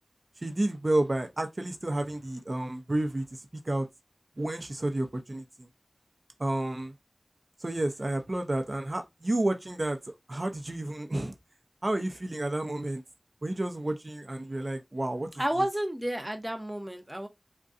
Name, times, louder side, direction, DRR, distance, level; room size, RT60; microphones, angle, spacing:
voice 1, 0.4-3.9 4.4-5.7 6.4-6.9 7.6-11.3 11.8-13.0 13.4-15.3, right 1 dB, 50° right, 0.6 m, -31 dB
voice 2, 15.4-17.3, right 1 dB, 20° right, 0.8 m, -31 dB
3.7 x 2.2 x 2.5 m
wide cardioid pair, 50°, 0 cm